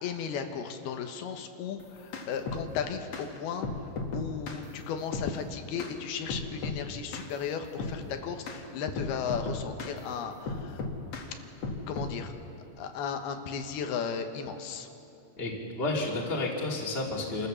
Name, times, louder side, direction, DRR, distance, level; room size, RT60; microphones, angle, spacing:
voice 1, 0.0-10.8 11.9-12.4 12.8-14.9, left 7 dB, 85° left, 6 dB, 3.1 m, -35 dB
sound 1, 1.8-2.6 3.1-3.3 3.6-4.6 5.1-5.3 5.8-5.9 6.3-6.8 7.1-7.3 7.8-8.0 8.5-8.6 9.0-10.0 10.5-11.3 11.6-12.1, left 3 dB, 50° left, 2.4 m, -35 dB
voice 2, 15.4-17.5, left 2 dB, 20° left, -2 dB, 2.4 m, -31 dB
27.0 x 14.5 x 6.9 m, 2.7 s
omnidirectional pair, 4.3 m